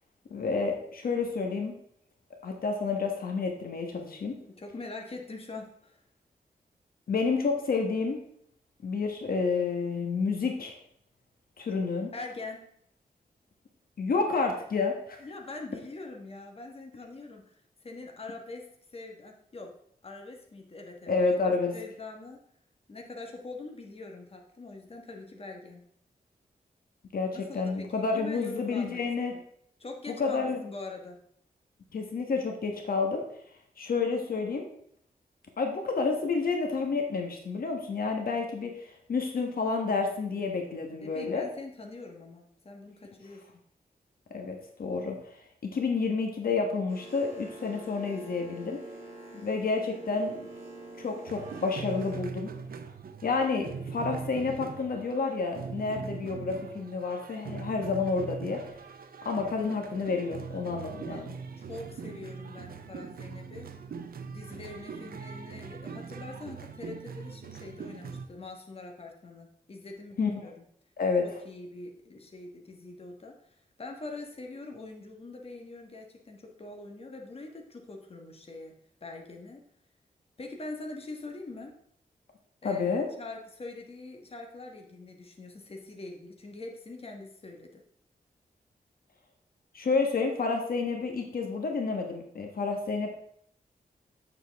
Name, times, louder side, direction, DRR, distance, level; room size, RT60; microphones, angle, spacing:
voice 1, 0.3-1.7 2.4-4.4 7.1-8.2 8.8-10.8 11.6-12.1 14.0-15.3 21.1-21.7 27.1-29.3 30.2-30.6 31.9-33.2 33.8-34.7 35.6-41.4 44.3-48.8 49.4-50.4 51.0-52.5 53.2-58.7 59.2-61.3 70.2-70.5 71.0-71.2 82.6-83.1 89.7-93.1, left 4 dB, 70° left, 3 dB, 1.2 m, -30 dB
voice 2, 4.5-6.0 12.1-12.7 15.2-19.8 20.0-22.4 22.9-25.9 27.3-29.0 29.3-29.4 29.8-31.2 41.0-43.4 61.1-61.3 61.5-63.7 64.3-70.6 71.2-78.7 79.0-79.6 80.4-81.7 82.6-87.8, left 3 dB, 40° left, 2 dB, 1.4 m, -43 dB
Boat Water vehicle, 46.9-52.2, right 2 dB, 45° right, 2.7 m, -45 dB
sound 1, 51.3-68.3, right 5 dB, 75° right, 0.7 m, -41 dB
8.2 x 7.1 x 3.5 m, 0.68 s
wide cardioid pair, 110°, 16 cm